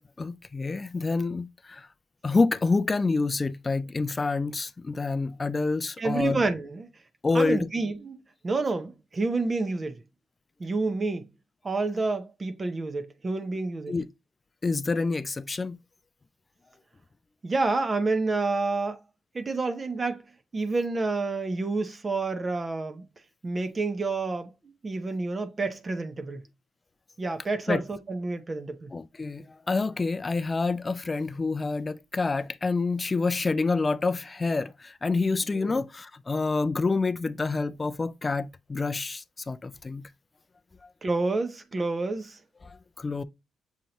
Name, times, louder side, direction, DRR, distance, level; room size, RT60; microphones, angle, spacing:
voice 1, 0.2-1.9 2.2-6.4 7.2-7.7 13.9-14.1 14.6-15.8 27.7-27.8 28.9-40.1 42.6-43.2, left 3 dB, 25° left, 0.3 m, -27 dB
voice 2, 6.0-6.9 7.3-10.0 10.6-11.3 11.6-14.0 17.4-19.0 19.3-20.2 20.5-23.0 23.4-24.5 24.8-26.4 27.2-28.9 35.5-35.8 41.0-42.4, right 3 dB, 30° right, 0.6 m, -29 dB
6.4 x 2.7 x 2.8 m
cardioid pair, 90°, 0 cm